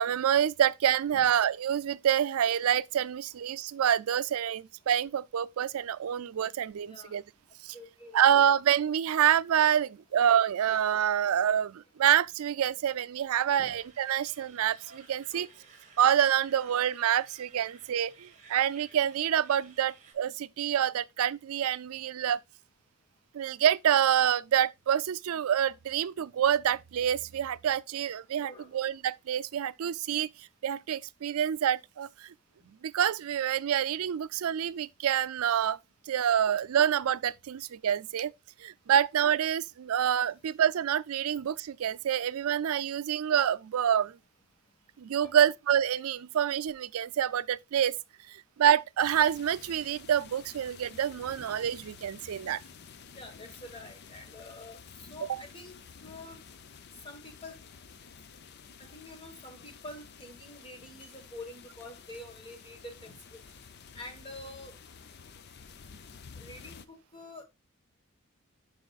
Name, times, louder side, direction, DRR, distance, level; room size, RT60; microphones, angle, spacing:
voice 1, 0.0-7.2 7.6-7.7 8.1-15.5 16.0-22.4 23.3-30.3 30.6-32.3 32.8-35.8 36.1-38.3 38.6-44.2 45.0-47.9 48.3-52.6 55.3-55.4, right 9 dB, 85° right, 0.4 m, -27 dB
voice 2, 6.8-7.1 7.7-8.3 13.6-13.8 14.4-14.5 15.3-15.5 28.4-28.8 45.2-45.3 53.1-55.8 56.0-56.4 57.0-57.6 58.8-63.4 63.9-64.8 66.4-67.4, left 1 dB, 25° left, 1.4 m, -47 dB
sound 1, 13.5-20.1, right 5 dB, 35° right, 1.3 m, -56 dB
sound 2, 49.0-66.9, left 6 dB, 50° left, 0.5 m, -51 dB
11.5 x 4.8 x 2.3 m
head